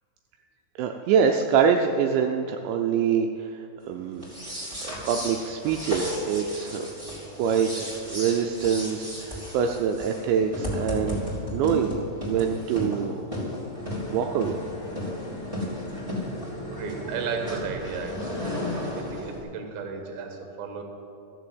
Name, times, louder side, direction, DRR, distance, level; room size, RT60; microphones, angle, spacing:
voice 1, 0.8-4.3 4.8-6.9 7.4-11.2 11.5-13.1 14.1-14.6, right 7 dB, 85° right, 4 dB, 2.6 m, -25 dB
sound 1, 4.1-19.4, left 1 dB, 10° right, 1.7 m, -34 dB
voice 2, 16.6-18.6 19.0-20.8, right 5 dB, 65° right, 4 dB, 2.6 m, -34 dB
14.0 x 7.0 x 7.8 m, 2.8 s
omnidirectional pair, 5.7 m